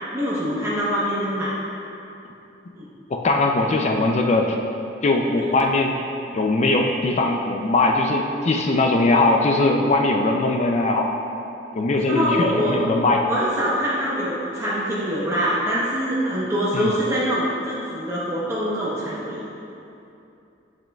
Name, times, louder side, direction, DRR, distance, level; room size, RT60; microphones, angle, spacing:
voice 1, 0.1-1.5 2.8-2.9 12.1-12.8 13.3-19.5, equal, 15° right, -9 dB, 0.9 m, -24 dB
voice 2, 3.1-4.5 5.0-6.0 6.3-11.1 11.7-13.2 16.7-16.9, left 2 dB, 40° left, 2 dB, 0.4 m, -20 dB
7.5 x 7.4 x 2.3 m, 2.7 s
head